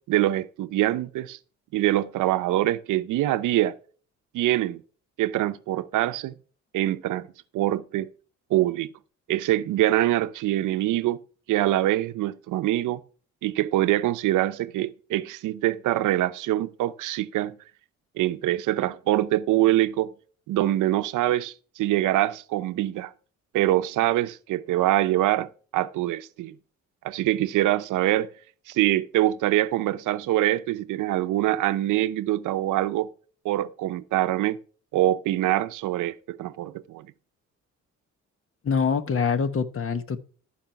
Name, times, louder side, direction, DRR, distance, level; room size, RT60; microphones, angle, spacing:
voice 1, 0.1-1.4 1.7-3.8 4.3-4.8 5.2-6.3 6.7-7.3 7.5-8.1 8.5-8.9 9.3-11.2 11.5-13.0 13.4-17.5 18.2-20.1 20.5-23.1 23.5-26.6 27.0-28.3 28.7-33.1 33.4-34.6 34.9-37.1, right 14 dB, 85° right, 0.7 m, -24 dB
voice 2, 38.6-40.2, left 6 dB, 45° left, 1.4 m, -25 dB
14.0 x 4.9 x 5.8 m
cardioid pair, 90°, 30 cm